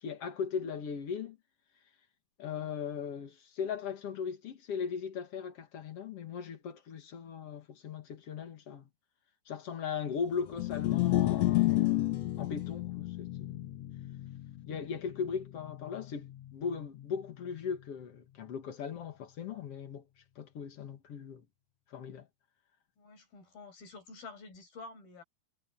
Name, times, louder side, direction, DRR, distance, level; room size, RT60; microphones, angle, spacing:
voice 1, 0.0-1.4 2.4-8.9 9.5-13.6 14.7-20.1 20.4-21.4 21.9-22.3, left 6 dB, 50° left, 2.2 m, -38 dB
sound 1, 10.5-16.8, left 16 dB, 65° left, 1.7 m, -32 dB
voice 2, 23.0-25.2, left 3 dB, 85° left, 7.9 m, -49 dB
omnidirectional pair, 4.1 m